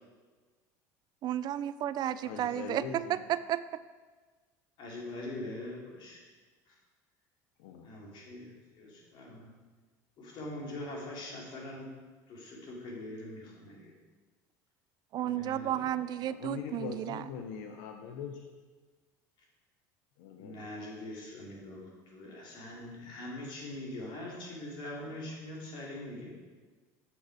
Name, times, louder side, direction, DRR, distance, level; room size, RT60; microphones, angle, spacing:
voice 1, 1.2-3.8 15.1-17.3, right 11 dB, 50° right, 15 dB, 0.3 m, -33 dB
voice 2, 2.1-3.2 7.6-7.9 16.2-18.5 20.2-20.6, left 7 dB, 80° left, 4 dB, 0.7 m, -42 dB
voice 3, 4.8-6.2 6.7-6.8 7.8-9.5 10.2-11.9 12.3-13.9 15.2-15.8 20.3-26.3, left 1 dB, 55° left, -2 dB, 2.7 m, -43 dB
7.2 x 7.0 x 4.7 m, 1.4 s
supercardioid pair, 95°, 9 cm